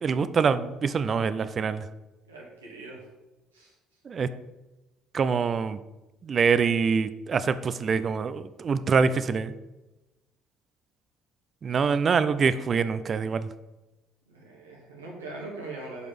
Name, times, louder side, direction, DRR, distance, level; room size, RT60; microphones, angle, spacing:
voice 1, 0.0-1.8 4.1-4.3 5.1-5.8 6.2-9.5 11.6-13.5, right 5 dB, 40° right, 13 dB, 0.6 m, -25 dB
voice 2, 2.3-3.1 3.5-3.7 14.3-16.1, right 2 dB, 85° right, -3 dB, 2.3 m, -41 dB
8.2 x 5.2 x 6.0 m, 1.1 s
figure-of-eight pair, 50°, 0 cm